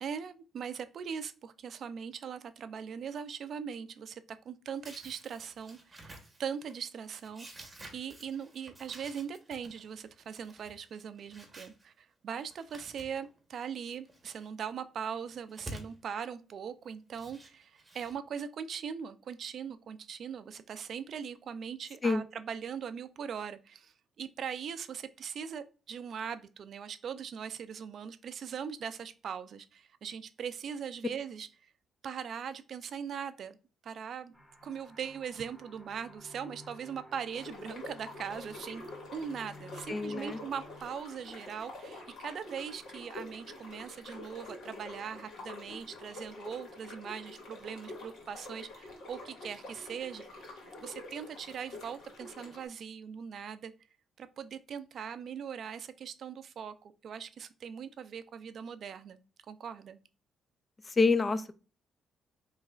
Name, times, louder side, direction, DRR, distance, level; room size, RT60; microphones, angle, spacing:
voice 1, 0.0-31.7 32.0-33.6 33.8-34.3 34.6-50.3 50.8-53.7 54.2-59.2 59.5-60.0, right 7 dB, 60° right, 0.4 m, -40 dB
sound 1, 4.8-11.8 12.4-13.4 13.8-14.5 15.3-15.9 16.9-18.1, right 1 dB, 20° right, 1.2 m, -51 dB
sound 2, 34.3-40.8, equal, 5° right, 1.6 m, -53 dB
sound 3, 37.3-52.7, left 2 dB, 70° left, 2.0 m, -47 dB
voice 2, 39.9-40.4 61.0-61.5, left 4 dB, 30° left, 0.3 m, -27 dB
4.8 x 3.1 x 2.3 m
cardioid pair, 90°, 0 cm